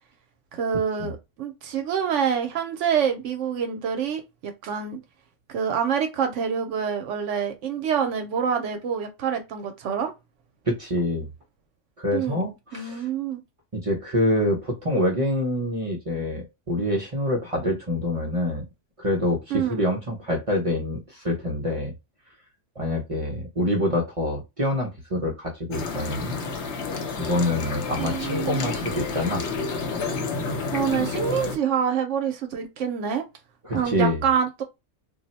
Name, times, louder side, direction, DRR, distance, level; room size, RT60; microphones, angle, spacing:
voice 1, 0.5-5.0 5.5-10.1 12.1-12.4 12.7-13.4 19.5-19.8 28.0-28.7 30.7-33.2 33.7-34.6, right 7 dB, 75° right, 0.9 m, -26 dB
voice 2, 10.7-11.3 12.0-13.1 13.7-18.6 19.0-21.9 22.8-26.4 27.2-29.4 33.6-34.2, left 1 dB, 35° right, 0.6 m, -26 dB
sound 1, 25.7-31.6, left 4 dB, 65° left, 0.9 m, -30 dB
2.5 x 2.1 x 4.0 m
omnidirectional pair, 1.3 m